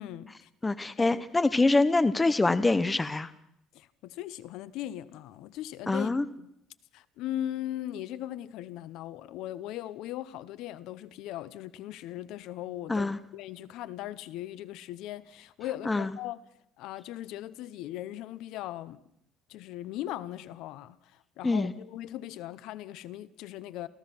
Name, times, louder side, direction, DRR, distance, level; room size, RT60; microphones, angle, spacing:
voice 1, 0.0-0.5 1.0-1.2 3.7-6.1 6.4-6.5 6.9-16.4 16.8-19.0 19.5-23.9, left 13 dB, 70° left, 0.9 m, -39 dB
voice 2, 0.6-3.3 5.9-6.2 12.9-13.2 15.9-16.1 21.4-21.7, left 3 dB, 10° left, 0.7 m, -25 dB
28.0 x 15.0 x 6.1 m
cardioid pair, 160°, 0 cm